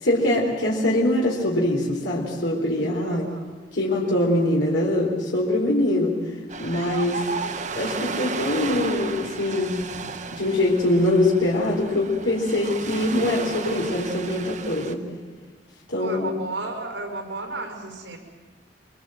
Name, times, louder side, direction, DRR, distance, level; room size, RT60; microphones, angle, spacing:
voice 1, 0.0-3.3 3.7-6.2 6.6-7.3 7.8-9.9 10.3-15.0 15.9-16.3, left 1 dB, 85° left, -3 dB, 4.0 m, -23 dB
voice 2, 3.0-3.4 16.0-18.2, right 2 dB, 85° right, 4 dB, 5.3 m, -33 dB
Ocean, 6.5-14.9, right 4 dB, 40° right, 1.0 m, -33 dB
24.5 x 24.0 x 7.8 m, 1.4 s
head